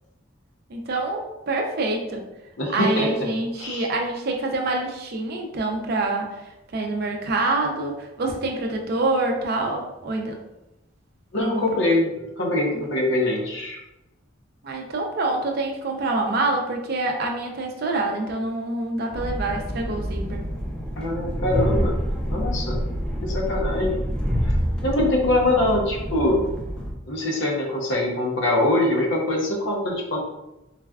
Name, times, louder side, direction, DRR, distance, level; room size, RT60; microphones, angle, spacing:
voice 1, 0.7-2.2 2.7-6.4 6.7-10.4 11.4-11.7 14.6-20.5, right 2 dB, 50° right, 2 dB, 0.4 m, -26 dB
voice 2, 2.6-3.3 3.6-3.9 11.3-13.8 21.0-22.0 22.3-22.9 23.2-24.1 24.5-24.6 24.8-26.5 27.1-30.2, left 1 dB, 65° left, 0 dB, 0.7 m, -23 dB
Train, 19.1-26.9, equal, 5° left, 0.5 m, -27 dB
4.0 x 2.2 x 2.3 m, 0.94 s
head